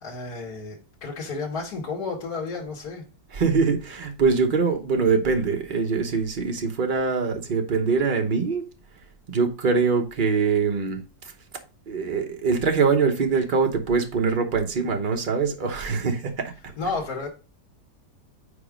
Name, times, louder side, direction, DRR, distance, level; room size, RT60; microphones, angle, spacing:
voice 1, 0.0-3.0 16.8-17.3, left 4 dB, 65° left, 2.2 m, -32 dB
voice 2, 3.3-8.6 9.3-11.0 11.9-16.5, right 5 dB, 35° right, 1.0 m, -23 dB
5.1 x 4.5 x 5.0 m
omnidirectional pair, 1.7 m